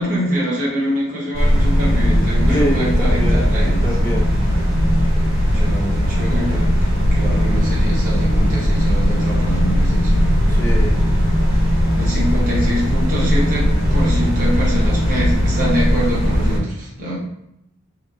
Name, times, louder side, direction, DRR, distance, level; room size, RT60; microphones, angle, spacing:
voice 1, 0.0-3.8 5.5-6.7 7.1-10.3 12.0-17.1, equal, 40° right, -6 dB, 1.0 m, -25 dB
sound 1, 1.3-16.6, equal, 85° right, 1.4 m, -17 dB
voice 2, 2.5-4.3 10.5-11.0, equal, 15° left, -3 dB, 0.5 m, -25 dB
2.8 x 2.2 x 3.5 m, 0.79 s
head